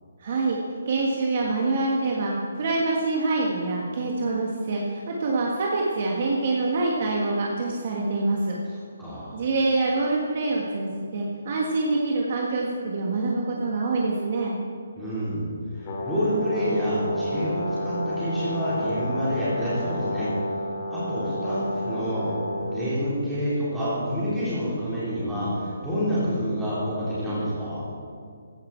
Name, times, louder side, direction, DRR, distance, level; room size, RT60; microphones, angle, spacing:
voice 1, 0.2-0.6 0.8-8.6 9.3-14.6, right 3 dB, 35° right, -2 dB, 1.5 m, -25 dB
voice 2, 8.7-9.4 15.0-15.5 15.8-20.3 20.9-27.8, equal, ahead, -13 dB, 4.1 m, -28 dB
Brass instrument, 15.8-22.8, left 1 dB, 25° left, 2.2 m, -30 dB
15.5 x 12.5 x 4.5 m, 2.3 s
hypercardioid pair, 175°, 0 cm